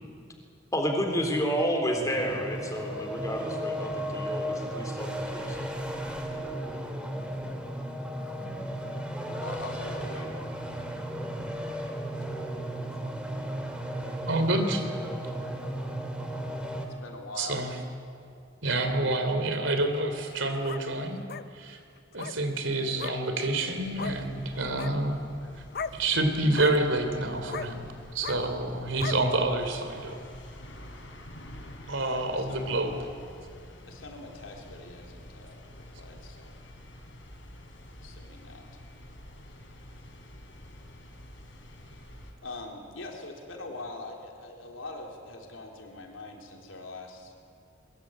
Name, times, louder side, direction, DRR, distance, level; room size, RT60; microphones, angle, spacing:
voice 1, 0.7-5.7, equal, 15° left, 3 dB, 3.6 m, -30 dB
sound 1, 2.1-16.9, equal, 5° right, 2.5 m, -35 dB
voice 2, 6.5-6.9 9.4-10.3 17.0-17.7 31.8-32.6 33.9-36.6 38.0-38.8 42.4-47.3, left 2 dB, 90° left, 1 dB, 3.8 m, -43 dB
voice 3, 14.1-14.9 17.4-17.7 18.6-21.2 21.5-21.8 22.1-25.2 25.9-30.2 31.9-32.9, right 2 dB, 75° right, 7 dB, 3.2 m, -28 dB
sound 2, 20.3-20.8 21.3-21.4 22.1-22.4 23.0-23.1 24.0-24.2 24.6-24.9 25.7-26.0 26.5-26.8 27.5-27.7 28.2-28.4 29.0-29.2, left 6 dB, 50° left, 0.7 m, -36 dB
sound 3, 23.8-42.3, left 1 dB, 70° left, 4.1 m, -48 dB
22.0 x 22.0 x 8.8 m, 2.5 s
head